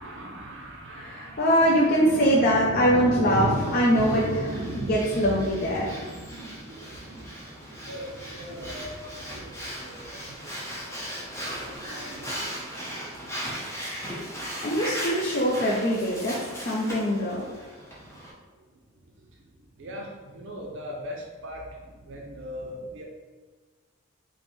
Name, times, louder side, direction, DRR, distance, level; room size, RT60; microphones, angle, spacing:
voice 1, 0.0-10.6 11.5-12.3 19.8-21.6 22.1-23.0, right 1 dB, 60° right, -1 dB, 0.5 m, -36 dB
voice 2, 0.9-4.2 4.7-6.0 14.6-16.3 16.7-17.4, equal, 45° left, -5 dB, 0.5 m, -23 dB
Breathing, 3.2-18.3, equal, 15° left, 0.8 m, -38 dB
5.1 x 2.1 x 3.1 m, 1.4 s
head